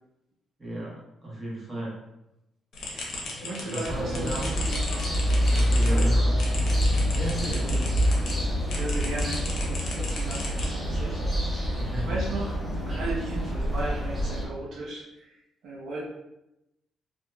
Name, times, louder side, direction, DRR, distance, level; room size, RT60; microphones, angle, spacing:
voice 1, 0.6-2.0 3.6-4.5 5.5-6.3 7.1-7.9 11.8-12.2, right 1 dB, 20° right, -6 dB, 1.2 m, -34 dB
sound 1, 2.7-8.3 8.7-11.1, left 2 dB, 65° left, 0.8 m, -37 dB
voice 2, 2.8-4.8 5.3-6.1 7.6-7.9 8.7-12.5 12.9-16.1, right 2 dB, 70° right, -4 dB, 0.7 m, -37 dB
sound 2, 3.8-14.5, equal, 10° left, 0.9 m, -26 dB
2.8 x 2.7 x 2.2 m, 0.89 s
cardioid pair, 90°, 0 cm